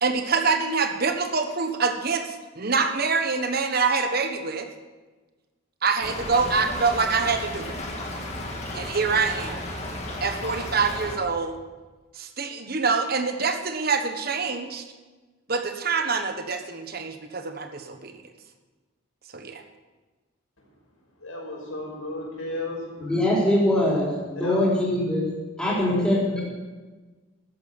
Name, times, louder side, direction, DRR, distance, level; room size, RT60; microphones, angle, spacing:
voice 1, 0.0-4.7 5.8-7.8 8.7-9.6 10.2-11.6 12.1-14.8 15.5-18.1 19.3-19.6, right 4 dB, 45° right, 6 dB, 1.2 m, -25 dB
Stream / Trickle dribble, 6.0-11.2, left 1 dB, 30° left, 2.1 m, -34 dB
voice 2, 21.2-22.8 24.4-24.6 25.7-25.9, left 2 dB, 80° left, -2 dB, 5.5 m, -33 dB
voice 3, 23.0-25.3 25.6-26.4, left 1 dB, 5° left, -6 dB, 4.3 m, -22 dB
13.5 x 9.6 x 6.9 m, 1.3 s
head